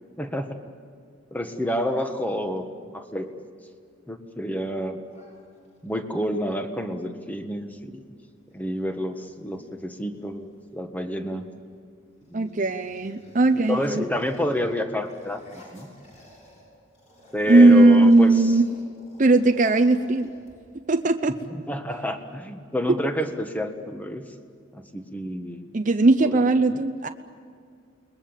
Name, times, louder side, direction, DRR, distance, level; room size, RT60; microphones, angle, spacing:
voice 1, 0.2-0.6 1.3-3.3 4.1-5.0 5.8-8.0 8.5-11.5 12.3-12.5 13.5-15.9 17.3-18.6 21.5-24.3 24.7-25.7 26.2-26.4, left 1 dB, 10° left, 6 dB, 1.5 m, -29 dB
sound 1, 5.1-6.0 7.7-7.9 8.2-8.7 9.2-10.7 11.4-11.8 12.1-16.7 16.9-20.9, left 1 dB, 35° left, 6.9 m, -52 dB
voice 2, 12.3-14.0 17.5-18.7 19.2-20.3 20.9-21.4 25.7-27.1, right 2 dB, 40° right, 6 dB, 0.7 m, -18 dB
29.0 x 21.5 x 7.4 m, 2.2 s
head